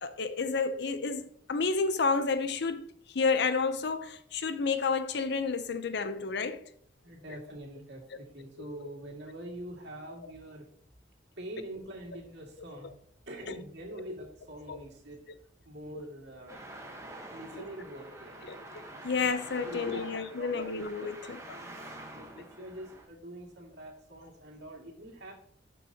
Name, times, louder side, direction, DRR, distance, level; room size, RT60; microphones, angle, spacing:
voice 1, 0.0-6.7 13.5-13.6 14.7-14.8 18.4-21.4, left 4 dB, 65° left, 0.7 m, -31 dB
voice 2, 7.0-10.7 11.4-13.0 13.3-15.2 15.6-16.8 17.3-18.7 19.5-20.7 21.3-21.7 22.1-25.3, right 1 dB, 65° right, 2.2 m, -45 dB
Traffic noise roadway noise, 16.5-23.0, right 1 dB, 15° right, 1.1 m, -47 dB
12.0 x 5.5 x 2.8 m
head